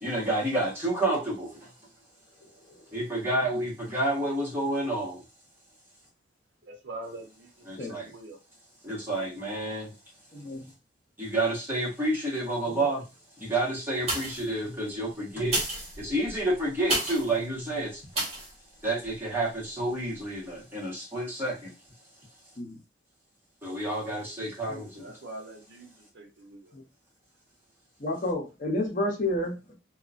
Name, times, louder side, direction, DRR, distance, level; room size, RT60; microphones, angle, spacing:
voice 1, 0.0-1.5 2.9-5.2 7.7-8.0 8.8-9.9 11.2-13.0 13.4-15.6 16.0-18.0 18.8-21.7 23.6-25.0, right 1 dB, 15° right, -6 dB, 1.3 m, -29 dB
voice 2, 6.6-8.4 24.9-26.7, right 2 dB, 75° right, 2 dB, 0.8 m, -44 dB
voice 3, 10.3-10.7 12.8-12.9 22.6-22.7 24.7-24.8 26.7-26.8 28.0-29.5, left 1 dB, 45° left, 0 dB, 0.8 m, -30 dB
sound 1, 14.0-14.6 15.4-17.3 18.1-18.5 19.0-19.1, right 1 dB, 35° right, 1.2 m, -31 dB
2.8 x 2.3 x 2.5 m, 0.28 s
head